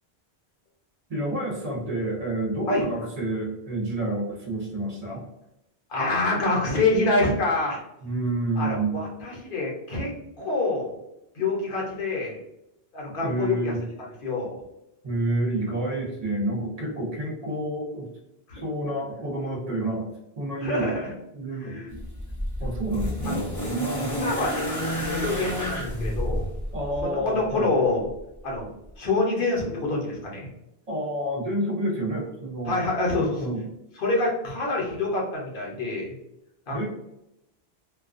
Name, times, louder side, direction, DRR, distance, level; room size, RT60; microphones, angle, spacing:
voice 1, 1.1-5.2 8.0-9.0 13.2-13.8 15.0-18.1 18.5-20.1 20.4-21.0 21.3-22.0 22.6-23.5 24.0-24.3 26.7-27.7 30.9-32.8 33.1-33.7 36.7-36.9, right 1 dB, 45° right, -1 dB, 0.6 m, -29 dB
voice 2, 5.9-7.8 8.6-10.1 10.4-10.9 11.4-12.4 12.9-13.7 14.2-14.6 18.5-18.6 20.6-21.1 21.6-21.9 22.9-23.5 24.0-26.5 27.0-28.1 28.4-28.7 29.0-30.5 32.7-33.3 34.0-36.1 36.7-36.9, left 2 dB, 60° left, -2 dB, 0.8 m, -26 dB
sound 1, 21.9-27.1 28.2-28.3, equal, 20° left, 0.6 m, -29 dB
2.3 x 2.2 x 2.4 m, 0.86 s
omnidirectional pair, 1.1 m